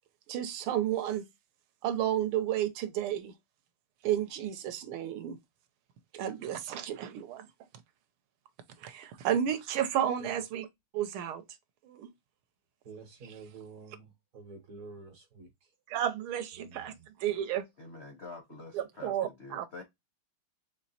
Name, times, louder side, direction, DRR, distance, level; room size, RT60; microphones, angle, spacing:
voice 1, 0.3-1.2 1.8-3.3 4.0-5.4 6.1-7.5 8.8-10.7 10.9-11.4 11.8-12.1 15.9-16.9 17.2-17.6 18.7-19.7, right 10 dB, 80° right, 1.4 m, -32 dB
voice 2, 12.8-15.5 16.6-17.1, right 4 dB, 55° right, 1.1 m, -49 dB
voice 3, 17.8-19.8, left 3 dB, 60° left, 0.6 m, -47 dB
4.4 x 3.1 x 2.7 m
omnidirectional pair, 2.4 m